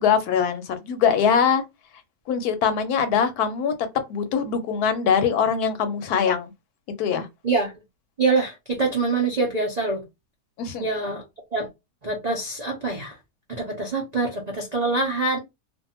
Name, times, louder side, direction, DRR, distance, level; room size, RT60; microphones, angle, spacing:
voice 1, 0.0-1.6 2.3-3.7 4.1-6.5 7.0-7.3 10.6-10.9, left 7 dB, 75° left, 1.1 m, -22 dB
voice 2, 8.2-10.0 10.8-11.2 11.5-11.7 12.0-13.2 13.5-15.4, right 3 dB, 55° right, 0.4 m, -25 dB
2.6 x 2.3 x 2.8 m
omnidirectional pair, 1.8 m